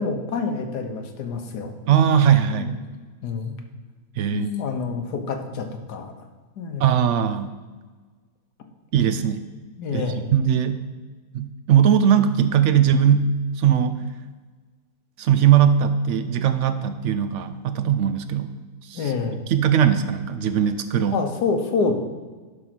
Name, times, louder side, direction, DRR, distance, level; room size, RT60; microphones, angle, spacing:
voice 1, 0.0-1.7 2.5-2.7 3.2-3.5 4.3-6.1 6.6-6.9 9.8-10.2 18.9-19.4 21.1-21.9, left 4 dB, 90° left, 5 dB, 1.6 m, -27 dB
voice 2, 1.9-2.7 4.2-4.5 6.8-7.6 8.9-9.4 9.9-10.8 11.3-14.0 15.2-19.1 19.5-21.2, right 8 dB, 70° right, 10 dB, 0.7 m, -20 dB
11.0 x 3.8 x 6.0 m, 1.4 s
omnidirectional pair, 1.7 m